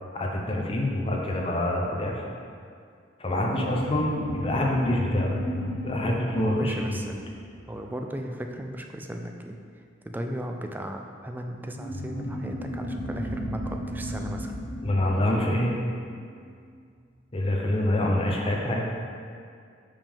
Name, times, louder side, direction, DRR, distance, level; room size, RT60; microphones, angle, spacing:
voice 1, 0.1-2.2 3.2-5.3 5.8-7.0 14.8-15.8 17.3-18.8, left 1 dB, 30° left, -1 dB, 0.7 m, -26 dB
sound 1, 3.4-8.3 11.7-16.6, equal, 65° left, 1.0 m, -34 dB
voice 2, 6.4-7.2 7.7-9.6 10.0-14.5, right 1 dB, 10° right, 4 dB, 0.3 m, -36 dB
5.1 x 5.1 x 3.6 m, 2.2 s
head